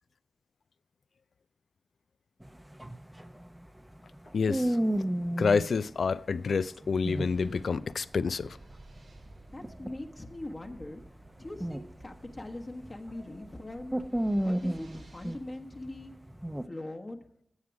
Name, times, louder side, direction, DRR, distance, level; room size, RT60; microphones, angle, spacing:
sound 1, 2.4-5.7 6.7-7.8 8.1-13.2 13.6-16.7, right 1 dB, 10° right, 0.6 m, -33 dB
voice 1, 4.3-4.8 5.4-8.6, left 5 dB, 80° left, 0.3 m, -28 dB
sound 2, 7.0-15.4, right 2 dB, 85° right, 2.0 m, -55 dB
voice 2, 9.5-11.0 11.4-14.0 14.4-16.1 16.6-17.2, left 1 dB, 40° left, 1.1 m, -41 dB
9.6 x 7.5 x 6.0 m
cardioid pair, 45°, 0 cm